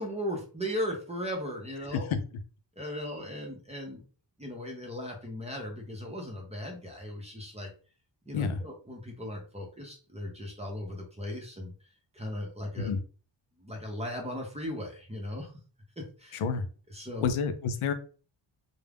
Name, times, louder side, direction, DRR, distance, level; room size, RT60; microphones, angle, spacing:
voice 1, 0.0-2.1 2.8-4.0 4.4-7.7 8.3-11.7 12.1-12.9 13.6-15.5 16.0-16.4 16.9-17.3, equal, 15° right, 0.5 m, -37 dB
voice 2, 16.3-16.7 17.2-17.9, left 5 dB, 85° left, 0.5 m, -29 dB
2.3 x 2.0 x 3.3 m
wide cardioid pair, 155°, 49 cm